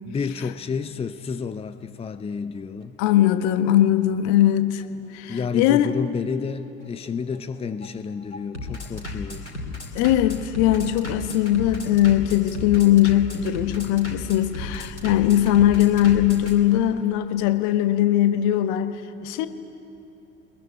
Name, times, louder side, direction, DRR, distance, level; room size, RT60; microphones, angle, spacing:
voice 1, 0.1-3.0 5.3-9.5, left 5 dB, 15° left, 12 dB, 0.8 m, -30 dB
Bass drum, 0.6-16.5, left 2 dB, 85° left, 2.7 m, -35 dB
voice 2, 3.0-4.8 5.1-6.0 9.9-19.5, left 12 dB, 55° left, 10 dB, 1.4 m, -20 dB
22.0 x 20.5 x 9.9 m, 2.9 s
figure-of-eight pair, 65°, 34 cm